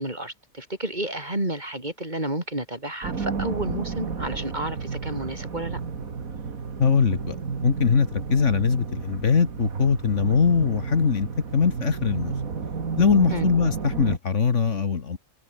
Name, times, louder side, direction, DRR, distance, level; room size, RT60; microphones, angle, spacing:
voice 1, 0.0-5.8 13.3-13.5, right 1 dB, 30° right, 5.6 m, -31 dB
sound 1, 3.0-14.2, right 5 dB, 80° right, 2.5 m, -32 dB
voice 2, 6.8-7.4 7.6-11.3 11.5-12.3 13.0-15.2, left 5 dB, 60° left, 1.9 m, -21 dB
omnidirectional pair, 1.4 m